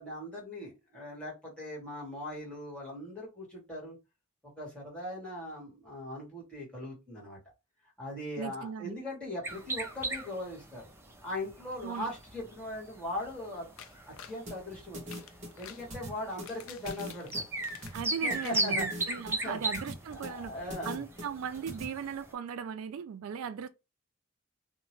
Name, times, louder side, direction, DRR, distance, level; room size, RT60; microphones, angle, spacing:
voice 1, 0.0-4.0 4.6-7.4 8.0-10.8 11.2-13.7 14.3-15.2 15.6-17.4 17.9-18.0 18.2-19.6 20.1-21.0, left 1 dB, 5° left, 1.4 m, -40 dB
voice 2, 8.4-9.0 11.8-12.1 17.9-23.7, right 7 dB, 75° right, 0.3 m, -38 dB
sound 1, 9.4-22.3, right 2 dB, 10° right, 0.5 m, -37 dB
sound 2, 13.8-14.4 15.0-15.9 16.3-18.1 18.4-19.3 19.7-19.8 20.1-20.2, left 9 dB, 70° left, 0.4 m, -49 dB
sound 3, 14.5-21.8, equal, 35° right, 1.1 m, -42 dB
2.8 x 2.1 x 2.9 m
head